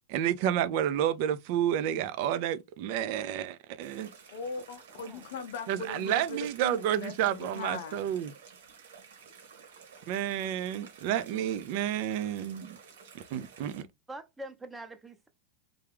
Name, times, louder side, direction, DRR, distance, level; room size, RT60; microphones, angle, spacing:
voice 1, 0.0-4.1 5.7-8.3 10.1-12.8 13.3-13.9, right 10 dB, 60° right, 0.5 m, -30 dB
sound 1, 3.8-13.8, right 6 dB, 85° right, 1.4 m, -53 dB
voice 2, 4.3-8.1, left 4 dB, 75° left, 0.5 m, -40 dB
voice 3, 4.9-5.3 14.1-15.3, right 1 dB, 10° right, 0.8 m, -44 dB
3.4 x 2.3 x 3.4 m
hypercardioid pair, 120°, 0 cm